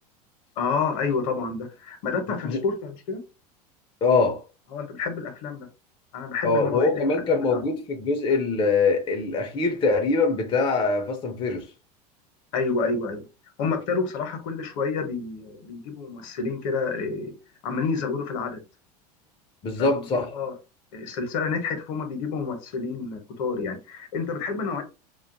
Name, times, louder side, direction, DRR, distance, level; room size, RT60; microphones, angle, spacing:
voice 1, 0.6-3.2 4.7-5.7 6.1-7.6 12.5-13.2 13.6-17.3 17.6-18.6 19.8-20.1 20.3-20.5 20.9-24.8, left 4 dB, 60° left, 0.8 m, -29 dB
voice 2, 4.0-4.4 6.4-11.7 19.6-20.3, left 3 dB, 25° left, 0.5 m, -23 dB
2.4 x 2.3 x 2.5 m
hypercardioid pair, 85°, 21 cm